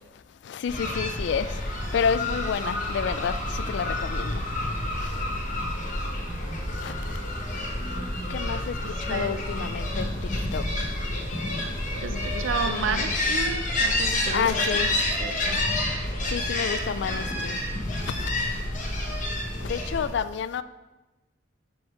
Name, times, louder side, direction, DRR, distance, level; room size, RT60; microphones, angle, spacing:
voice 1, 0.4-1.5 1.9-4.4 5.0-5.2 6.8-7.2 8.3-10.9 12.1-13.2 14.3-14.9 16.3-17.6 18.0-18.4 19.6-20.6, left 6 dB, 65° left, 0.3 m, -30 dB
sound 1, 0.7-20.1, left 1 dB, 40° left, 1.1 m, -29 dB
sound 2, 5.0-5.2 5.6-5.8 6.3-7.0 8.0-8.7 9.2-10.1, right 1 dB, 25° right, 0.5 m, -41 dB
voice 2, 11.9-14.5 15.2-15.6, right 5 dB, 90° right, 0.5 m, -32 dB
6.1 x 4.7 x 4.8 m
head